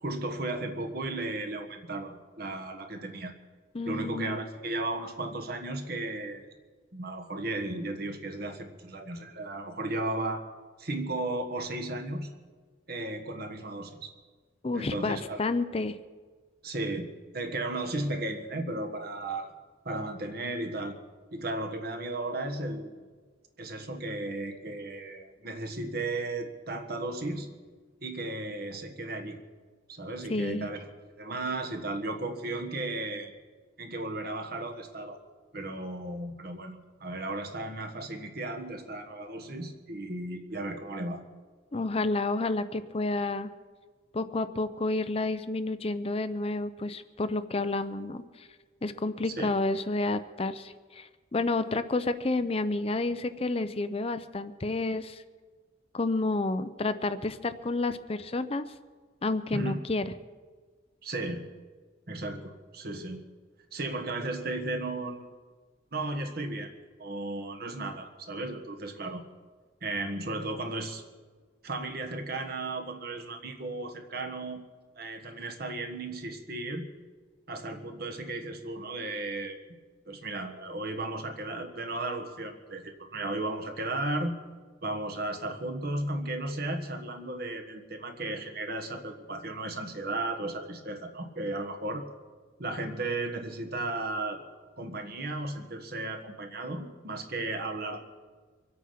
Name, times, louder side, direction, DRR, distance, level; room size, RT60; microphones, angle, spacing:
voice 1, 0.0-3.3 3.8-6.5 6.9-10.4 10.8-12.3 12.9-14.1 14.7-15.4 16.6-17.1 17.3-19.5 19.8-21.0 21.3-23.0 23.6-27.5 28.0-29.4 29.9-30.9 31.2-33.3 33.8-35.2 35.5-41.2 49.3-49.5 59.5-59.8 61.0-61.5 62.1-63.2 63.7-65.3 65.9-66.7 67.0-69.2 69.8-71.0 71.6-74.6 75.0-76.9 77.5-79.6 80.1-84.4 84.8-92.1 92.6-94.4 94.8-98.0, right 2 dB, 50° right, 5 dB, 1.5 m, -35 dB
voice 2, 3.7-4.4 14.6-16.0 30.3-30.7 41.7-43.5 44.1-48.5 48.8-55.2 55.9-58.6 59.2-60.0, left 2 dB, 30° left, 11 dB, 0.5 m, -30 dB
24.5 x 8.5 x 5.8 m, 1.5 s
head